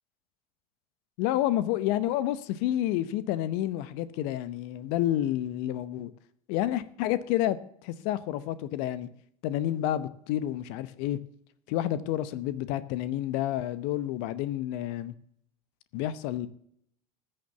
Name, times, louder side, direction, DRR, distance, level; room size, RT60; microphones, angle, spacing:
voice 1, 1.2-6.1 6.5-9.1 9.4-11.2 11.7-15.1 15.9-16.5, left 13 dB, 60° left, 0.8 m, -29 dB
14.0 x 6.7 x 7.1 m
hypercardioid pair, 80°, 20 cm